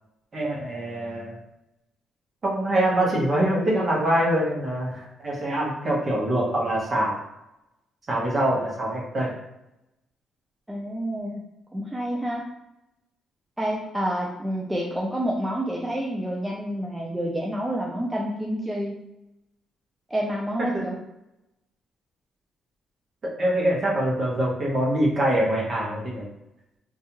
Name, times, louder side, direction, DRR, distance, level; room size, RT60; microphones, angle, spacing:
voice 1, 0.3-1.4 2.4-7.2 8.1-9.3 23.2-26.3, right 1 dB, 35° right, -3 dB, 0.8 m, -24 dB
voice 2, 10.7-11.4 11.7-12.5 13.6-19.0 20.1-21.0, equal, 5° right, -2 dB, 0.3 m, -28 dB
2.7 x 2.3 x 2.8 m, 0.89 s
cardioid pair, 135°, 0 cm